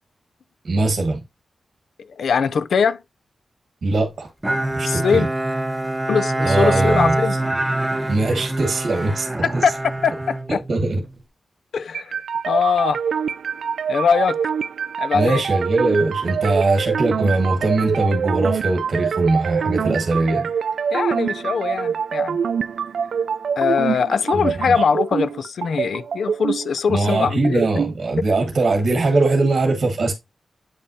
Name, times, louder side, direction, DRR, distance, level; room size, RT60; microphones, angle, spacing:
voice 1, 0.6-1.2 3.8-4.3 4.8-5.3 6.4-7.2 8.1-9.3 9.5-9.6 10.5-11.0 15.1-20.5 24.3-24.8 26.9-30.1, right 2 dB, 50° right, 1.4 m, -21 dB
voice 2, 2.2-3.0 4.8-5.3 6.1-7.4 9.4-10.4 11.7-12.2 12.5-13.0 13.9-14.4 15.0-15.4 20.9-22.4 23.6-27.6, left 6 dB, 80° left, 0.4 m, -21 dB
Bowed string instrument, 4.4-11.1, right 1 dB, 10° right, 0.9 m, -24 dB
sound 1, 11.9-27.9, right 7 dB, 85° right, 0.3 m, -25 dB
8.5 x 5.3 x 2.7 m
wide cardioid pair, 145°, 0 cm